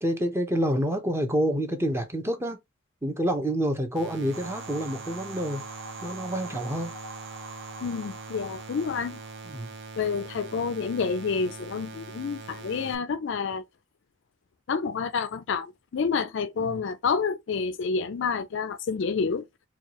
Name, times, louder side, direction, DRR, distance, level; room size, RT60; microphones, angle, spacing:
voice 1, 0.0-2.6 3.0-5.6 6.0-6.9 9.4-9.7 16.7-16.8, equal, 15° right, 0.7 m, -28 dB
sound 1, 3.9-12.9, right 4 dB, 60° right, 0.7 m, -43 dB
sound 2, 4.3-10.0, right 2 dB, 80° right, 1.2 m, -44 dB
voice 2, 7.8-9.2 10.0-13.6 14.7-19.5, left 5 dB, 65° left, 0.4 m, -29 dB
4.5 x 2.4 x 2.9 m
head